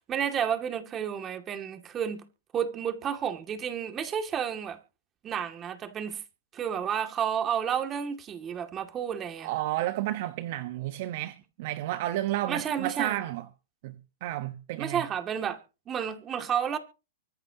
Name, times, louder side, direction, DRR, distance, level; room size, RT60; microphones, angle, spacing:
voice 1, 0.1-2.2 2.5-4.8 5.2-6.2 6.5-9.5 12.5-13.2 14.8-15.6 15.9-16.8, right 8 dB, 25° right, 2.3 m, -31 dB
voice 2, 9.4-13.4 13.8-15.0, right 14 dB, 55° right, 1.1 m, -32 dB
24.5 x 11.0 x 2.9 m
hypercardioid pair, 120°, 0 cm